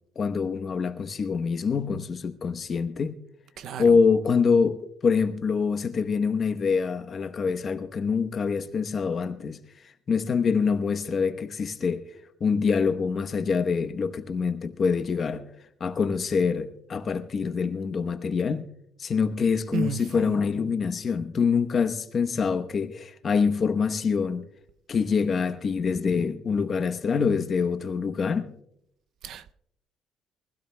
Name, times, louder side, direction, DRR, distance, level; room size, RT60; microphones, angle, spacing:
voice 1, 0.2-3.2 3.8-9.6 10.1-12.0 12.4-15.5 15.8-18.7 19.0-24.5 24.9-28.5, left 5 dB, 35° left, 0.9 m, -25 dB
voice 2, 19.7-20.4 29.2-29.5, right 7 dB, 60° right, 0.5 m, -33 dB
23.5 x 16.0 x 2.2 m
cardioid pair, 155°, 0 cm